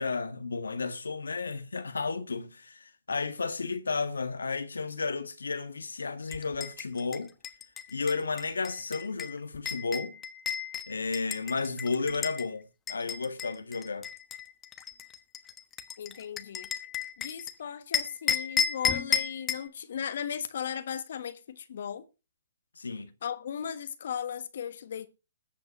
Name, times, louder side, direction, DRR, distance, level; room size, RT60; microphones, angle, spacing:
voice 1, 0.0-7.3 7.9-10.2 10.9-14.1 22.8-23.1, left 4 dB, 85° left, 1.6 m, -33 dB
sound 1, 6.3-12.4 12.9-17.5 17.9-19.7, left 8 dB, 15° left, 1.1 m, -33 dB
voice 2, 16.0-16.7 17.2-22.1 23.2-25.1, left 8 dB, 60° left, 1.3 m, -36 dB
20.5 x 7.9 x 3.0 m
hypercardioid pair, 135°, 0 cm